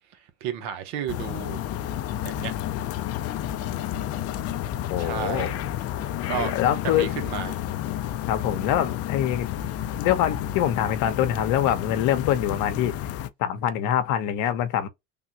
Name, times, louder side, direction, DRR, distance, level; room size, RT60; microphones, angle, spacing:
voice 1, 0.4-1.6 2.2-2.5 5.0-5.6 6.3-6.5 6.8-7.6, right 9 dB, 75° right, 1.0 m, -32 dB
sound 1, 1.1-13.3, left 11 dB, 50° left, 0.5 m, -31 dB
voice 2, 4.9-5.5 6.3-7.2 8.3-9.5 10.0-12.9 13.4-14.9, left 11 dB, 70° left, 0.9 m, -24 dB
3.5 x 2.3 x 2.8 m
supercardioid pair, 95°, 32 cm